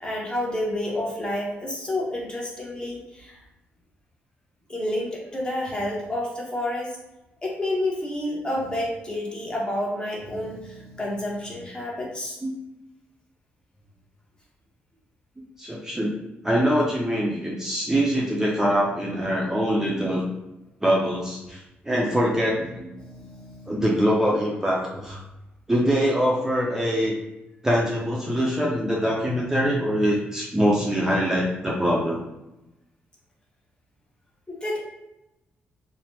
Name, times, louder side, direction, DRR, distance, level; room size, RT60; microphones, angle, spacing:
voice 1, 0.0-3.4 4.7-7.0 7.4-12.4 22.9-23.8 34.5-34.8, left 1 dB, 20° left, -3 dB, 0.9 m, -29 dB
voice 2, 15.6-16.2 16.4-20.2 20.8-22.9 23.7-25.2 25.7-27.1 27.6-32.2, equal, 10° right, -4 dB, 0.5 m, -23 dB
2.8 x 2.1 x 3.2 m, 0.95 s
cardioid pair, 100°, 4 cm